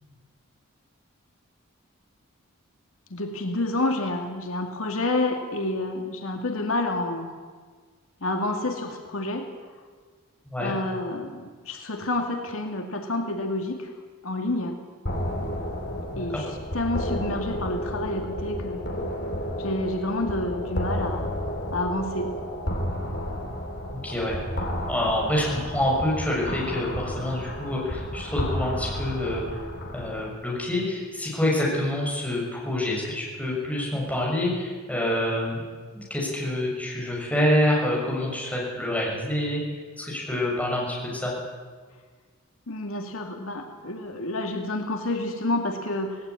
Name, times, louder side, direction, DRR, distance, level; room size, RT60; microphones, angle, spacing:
voice 1, 3.1-7.3 8.2-9.5 10.6-13.9 14.2-14.8 16.2-16.5 16.7-18.8 19.6-21.4 21.7-22.3 42.7-46.2, left 2 dB, 75° left, 4 dB, 2.2 m, -29 dB
sound 1, 15.1-30.3, equal, 50° left, 2.9 m, -32 dB
voice 2, 23.9-29.6 29.9-35.6 35.9-39.6 40.0-41.3, left 1 dB, 5° left, -4 dB, 6.6 m, -27 dB
18.0 x 17.5 x 9.7 m, 1.5 s
head